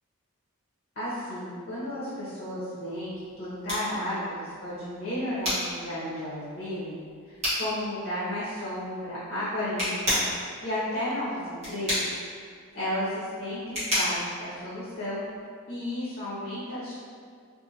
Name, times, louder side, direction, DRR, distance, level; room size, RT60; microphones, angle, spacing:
voice 1, 1.0-3.1 3.4-7.0 7.3-12.2 12.7-15.2 15.7-16.9, left 1 dB, 45° left, -11 dB, 0.8 m, -33 dB
sound 1, 2.9-15.4, equal, 30° right, 1.1 m, -33 dB
2.6 x 2.6 x 2.8 m, 2.1 s
head